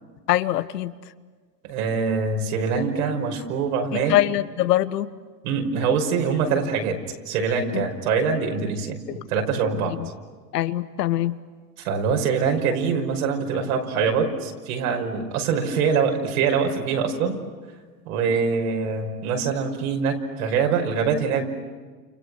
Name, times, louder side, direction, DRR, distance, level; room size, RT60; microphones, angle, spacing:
voice 1, 0.3-0.9 3.9-5.1 7.7-7.8 10.0-10.1 10.5-11.4, left 14 dB, 75° left, 12 dB, 1.4 m, -23 dB
voice 2, 1.6-4.1 5.4-7.0 7.3-9.9 11.8-17.3 18.1-21.5, right 5 dB, 60° right, 3 dB, 5.7 m, -24 dB
29.5 x 29.5 x 6.4 m, 1.5 s
supercardioid pair, 135°, 48 cm